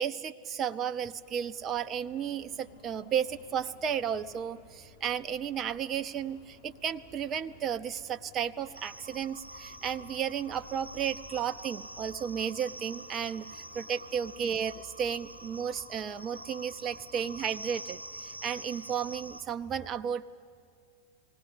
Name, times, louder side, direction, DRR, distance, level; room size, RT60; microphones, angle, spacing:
voice 1, 0.0-20.2, right 8 dB, 30° right, 11 dB, 0.4 m, -33 dB
sound 1, 1.2-19.5, left 3 dB, 65° left, 5.1 m, -56 dB
sound 2, 8.7-19.4, right 1 dB, 85° right, 0.9 m, -46 dB
19.5 x 16.5 x 9.9 m, 2.4 s
figure-of-eight pair, 90°, 0 cm